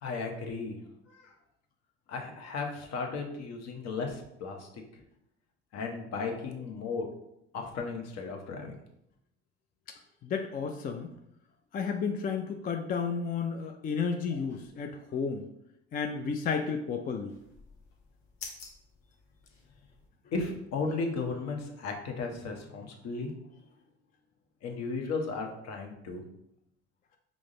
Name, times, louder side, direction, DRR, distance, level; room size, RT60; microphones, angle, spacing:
voice 1, 0.0-0.8 1.1-1.3 2.1-4.7 5.7-7.1 7.5-8.8 14.3-14.4 20.3-23.3 24.6-26.2, left 4 dB, 55° left, 3 dB, 0.9 m, -35 dB
voice 2, 10.2-11.1 11.7-15.5 15.9-17.3, left 5 dB, 30° left, 4 dB, 0.4 m, -32 dB
sound 1, 17.3-20.1, left 4 dB, 80° left, 0.9 m, -49 dB
4.9 x 2.0 x 3.7 m, 0.80 s
hypercardioid pair, 60°, 32 cm